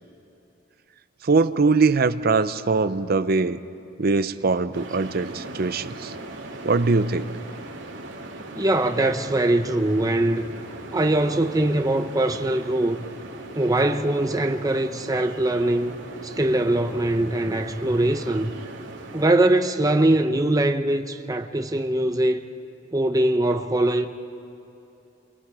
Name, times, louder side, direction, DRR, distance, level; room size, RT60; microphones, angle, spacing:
voice 1, 1.2-3.6 4.0-6.1 6.6-7.3, right 4 dB, 55° right, 0.7 m, -22 dB
sound 1, 4.7-19.3, right 2 dB, 85° right, 2.8 m, -39 dB
voice 2, 8.5-10.5 10.9-13.0 13.5-16.0 16.2-18.5 19.1-22.4 22.9-24.1, right 1 dB, 20° right, 0.9 m, -22 dB
29.5 x 23.0 x 4.9 m
head